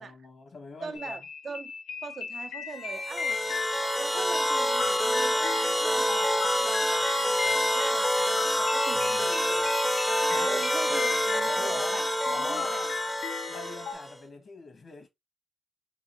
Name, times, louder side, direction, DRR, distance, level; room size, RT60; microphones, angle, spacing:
voice 1, 0.0-1.2 8.9-9.3 10.3-11.1 11.4-12.0 12.3-12.8 13.4-15.1, left 3 dB, 55° left, 1.3 m, -42 dB
voice 2, 0.8-1.7 2.0-3.4 4.0-9.8 10.3-12.9, right 5 dB, 55° right, 0.5 m, -41 dB
sound 1, 0.9-13.9, left 5 dB, 80° left, 0.8 m, -36 dB
sound 2, 2.9-14.1, equal, 5° left, 0.6 m, -27 dB
3.7 x 2.5 x 3.1 m
supercardioid pair, 55°, 0 cm